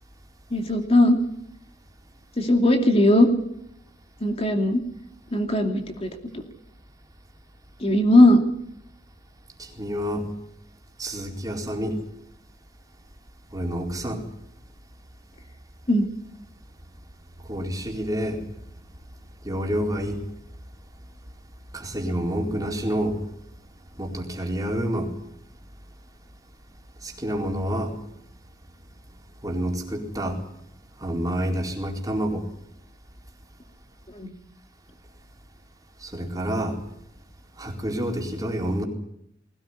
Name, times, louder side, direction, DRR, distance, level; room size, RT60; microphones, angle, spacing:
voice 1, 0.5-1.2 2.4-3.3 4.2-4.8 5.3-6.1 7.8-8.4 15.9-16.0 34.1-34.3, left 1 dB, 35° left, 3 dB, 2.7 m, -18 dB
voice 2, 9.6-10.3 11.0-11.9 13.5-14.2 17.5-18.4 19.4-20.2 21.7-23.2 24.0-25.1 27.0-27.9 29.4-30.4 31.0-32.4 36.0-36.8 37.6-38.8, equal, 20° right, 0 dB, 4.4 m, -28 dB
21.0 x 18.5 x 9.8 m, 0.75 s
head